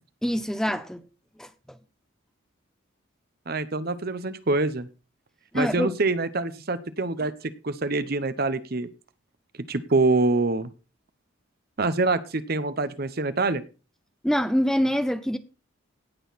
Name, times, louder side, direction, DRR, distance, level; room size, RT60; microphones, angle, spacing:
voice 1, 0.2-1.0 1.4-1.5 5.5-5.9 14.2-15.4, equal, 5° left, 0.5 m, -25 dB
voice 2, 3.5-4.9 5.5-7.3 7.6-8.9 9.7-10.7 11.8-13.6, right 3 dB, 50° right, 0.9 m, -25 dB
17.5 x 6.5 x 4.1 m
head